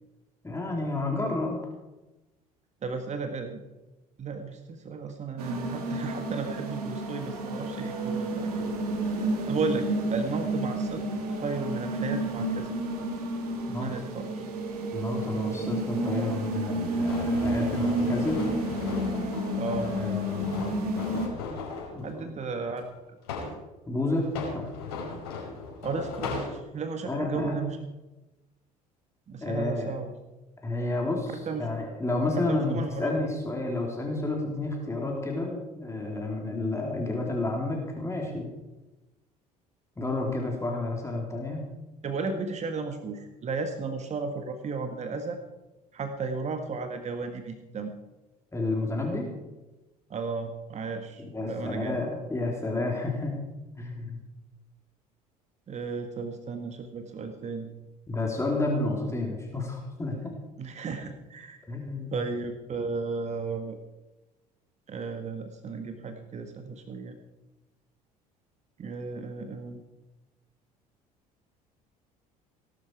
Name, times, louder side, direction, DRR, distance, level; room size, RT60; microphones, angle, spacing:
voice 1, 0.4-1.7 13.7-13.9 14.9-18.4 19.7-20.8 21.9-22.3 23.9-24.7 27.1-27.6 29.4-29.9 30.6-38.5 40.0-41.7 48.5-49.3 51.2-53.4 53.8-54.2 58.1-60.4 61.7-62.1, left 2 dB, 15° left, 0 dB, 3.7 m, -30 dB
voice 2, 2.8-3.6 4.2-11.0 11.3-12.7 13.7-14.4 19.5-19.9 22.0-22.8 25.8-27.8 29.3-30.1 31.5-31.9 32.3-33.1 42.0-45.4 45.9-47.9 50.1-52.0 55.7-57.7 60.6-61.6 62.1-63.8 64.9-67.2 68.8-69.8, right 4 dB, 35° right, 7 dB, 1.6 m, -34 dB
sound 1, 5.4-21.3, right 1 dB, 75° right, 2.4 m, -30 dB
sound 2, 16.9-22.0 22.8-23.6 24.2-26.5, left 4 dB, 65° left, 4.8 m, -37 dB
19.0 x 12.0 x 4.9 m, 1.1 s
figure-of-eight pair, 60°, 20 cm